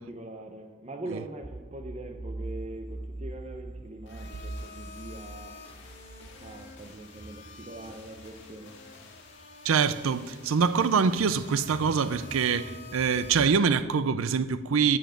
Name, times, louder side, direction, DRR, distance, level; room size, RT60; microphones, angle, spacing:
voice 1, 0.0-5.5 6.4-8.8, right 2 dB, 30° right, 0.8 m, -42 dB
sound 1, 1.4-8.5 9.1-9.4 10.5-13.6, right 2 dB, 15° right, 0.3 m, -43 dB
sound 2, 4.1-13.4, left 3 dB, 55° left, 1.9 m, -48 dB
voice 2, 9.6-15.0, right 6 dB, 80° right, 0.5 m, -25 dB
10.0 x 7.2 x 7.6 m
head